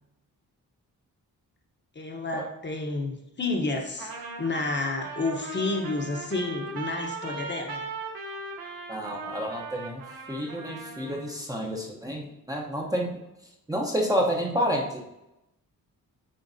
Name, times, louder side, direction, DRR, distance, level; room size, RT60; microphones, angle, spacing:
voice 1, 1.9-7.9, left 3 dB, 30° left, 2 dB, 0.9 m, -30 dB
Trumpet, 4.0-11.4, right 3 dB, 75° right, 1.2 m, -38 dB
voice 2, 8.9-10.0 10.3-13.2 13.7-15.0, equal, 10° right, -1 dB, 0.7 m, -29 dB
8.8 x 4.5 x 2.6 m, 0.89 s
wide cardioid pair, 155°, 35 cm